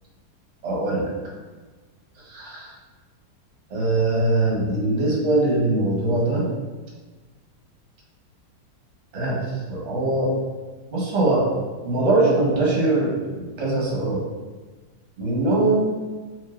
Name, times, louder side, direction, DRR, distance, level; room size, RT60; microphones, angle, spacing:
voice 1, 0.6-1.1 2.2-2.7 3.7-6.5 9.1-9.4 9.7-10.4 10.9-11.5 11.8-14.2 15.2-15.8, right 2 dB, 45° right, -4 dB, 1.3 m, -22 dB
5.4 x 3.2 x 2.4 m, 1.3 s
omnidirectional pair, 2.0 m